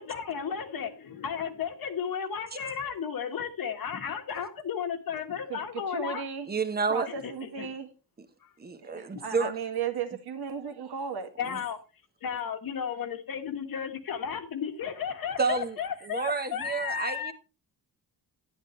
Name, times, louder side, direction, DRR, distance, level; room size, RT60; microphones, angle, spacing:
voice 1, 0.0-6.2 7.1-7.7 8.4-8.5 11.4-11.8 12.2-17.3, left 7 dB, 55° left, 1.5 m, -34 dB
voice 2, 5.9-6.5 6.9-7.9 8.8-11.3, right 7 dB, 70° right, 2.0 m, -35 dB
voice 3, 6.5-7.1 8.6-9.5 11.4-11.6 15.4-15.7 16.0-17.3, right 4 dB, 25° right, 1.1 m, -29 dB
10.5 x 10.0 x 3.1 m
cardioid pair, 135°, 40 cm